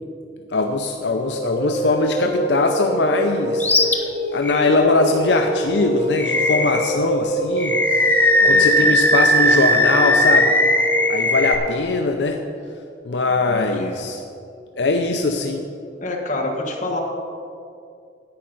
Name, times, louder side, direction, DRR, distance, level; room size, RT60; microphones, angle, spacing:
voice 1, 0.5-4.0 4.3-10.5 11.1-12.4 13.0-14.2 14.8-15.6, left 3 dB, 80° left, 4 dB, 0.6 m, -21 dB
sound 1, 0.9-11.2, right 1 dB, 55° right, 2.1 m, -26 dB
Animal, 3.6-4.0 4.4-4.6 6.2-6.9 7.6-11.5, left 1 dB, 10° left, 0.7 m, -17 dB
voice 2, 13.5-13.9 16.0-17.0, left 2 dB, 45° left, 0 dB, 1.5 m, -27 dB
10.5 x 8.7 x 5.4 m, 2.4 s
head